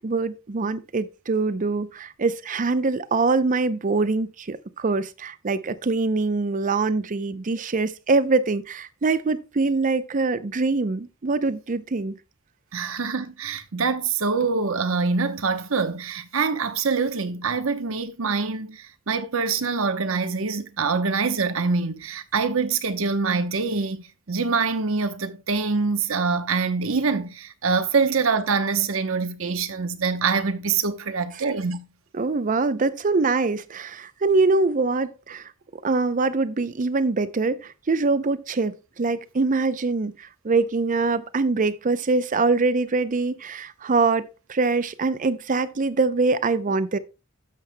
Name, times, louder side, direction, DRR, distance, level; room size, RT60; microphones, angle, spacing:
voice 1, 0.0-12.1 32.1-35.5 35.8-40.1 40.4-47.0, right 3 dB, 40° right, 0.5 m, -23 dB
voice 2, 12.7-18.8 19.1-31.8, right 4 dB, 70° right, 0.9 m, -25 dB
12.5 x 7.4 x 2.2 m
head